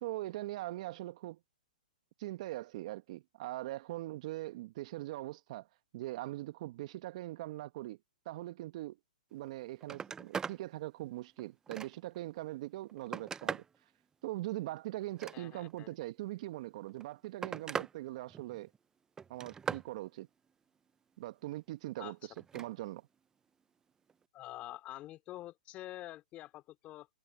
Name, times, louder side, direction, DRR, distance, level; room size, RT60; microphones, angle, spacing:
voice 1, 0.0-1.4 2.2-5.7 5.9-8.0 8.3-9.0 9.3-13.6 14.2-18.7 19.3-20.3 21.2-23.1, right 17 dB, 50° right, 1.6 m, -41 dB
Telephone, 9.4-9.5 9.8-10.6 11.1-12.2 12.7-13.8 15.0-15.8 16.8-17.9 18.3-18.8 19.2-19.9 22.4-22.7 24.1-24.2, right 6 dB, 15° right, 0.6 m, -41 dB
voice 2, 15.3-15.9 22.0-22.1 24.3-27.1, left 15 dB, 30° left, 2.6 m, -47 dB
hypercardioid pair, 125°, 5 cm